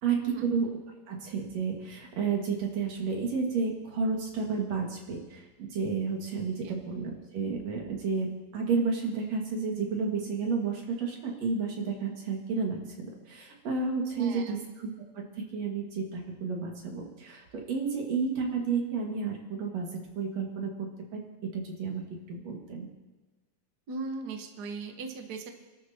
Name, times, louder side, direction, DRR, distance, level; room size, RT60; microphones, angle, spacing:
voice 1, 0.0-0.7 1.1-22.9, right 5 dB, 60° right, 0 dB, 3.0 m, -31 dB
voice 2, 14.2-14.6 23.9-25.5, right 4 dB, 75° right, 5 dB, 0.9 m, -38 dB
28.0 x 12.5 x 2.9 m, 1.2 s
omnidirectional pair, 3.6 m